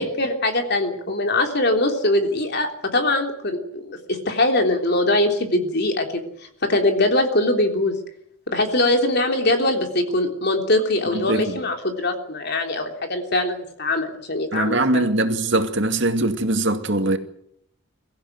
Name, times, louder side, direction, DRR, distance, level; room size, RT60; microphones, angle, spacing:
voice 1, 0.0-6.2 6.6-8.0 8.5-15.0, left 1 dB, 55° left, 3.5 m, -22 dB
voice 2, 11.1-11.6 14.5-17.2, right 2 dB, 60° right, 2.4 m, -22 dB
24.0 x 15.0 x 9.5 m
head